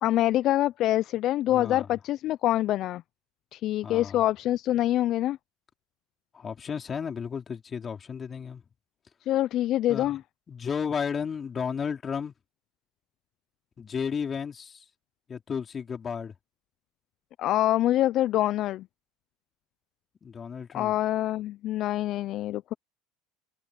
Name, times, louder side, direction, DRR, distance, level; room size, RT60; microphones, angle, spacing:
voice 1, 0.0-3.0 3.5-5.4 9.3-10.2 17.4-18.9 20.7-22.7, left 14 dB, 55° left, 0.7 m, -25 dB
voice 2, 1.5-1.9 3.8-4.2 6.3-8.6 9.9-10.2 10.5-12.3 13.8-14.8 15.3-16.3 20.2-20.9, left 6 dB, 30° left, 4.3 m, -33 dB
hypercardioid pair, 80°, 0 cm